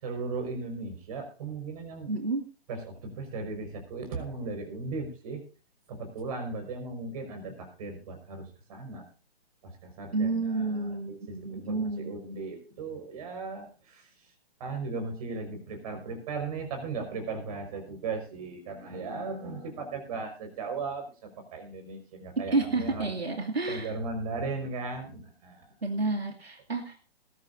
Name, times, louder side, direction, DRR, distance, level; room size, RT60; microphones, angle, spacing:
voice 1, 0.0-2.2 2.7-5.4 5.9-9.1 9.6-14.3 14.6-23.1 23.7-25.7, right 3 dB, 35° right, 5 dB, 5.5 m, -37 dB
voice 2, 2.1-2.5 10.1-12.1 22.5-23.9 25.8-27.0, right 3 dB, 75° right, 3 dB, 2.5 m, -30 dB
20.5 x 12.5 x 2.7 m, 0.35 s
figure-of-eight pair, 130°, 31 cm